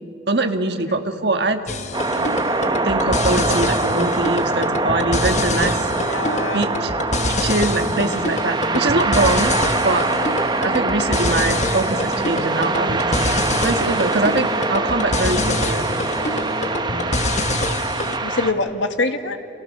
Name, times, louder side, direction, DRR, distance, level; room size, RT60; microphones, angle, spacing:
voice 1, 0.3-1.6 2.8-5.8 6.5-6.9 7.3-9.5 9.8-10.1 10.6-15.9, right 2 dB, 55° right, 7 dB, 1.6 m, -23 dB
sound 1, 1.7-18.2, left 2 dB, 35° left, 1.2 m, -26 dB
sound 2, 1.9-18.5, right 3 dB, 20° right, 1.1 m, -23 dB
voice 2, 6.0-6.7 8.7-8.8 17.1-17.4 18.2-19.4, left 3 dB, 75° left, 7 dB, 1.7 m, -25 dB
30.0 x 28.0 x 6.6 m, 2.9 s
head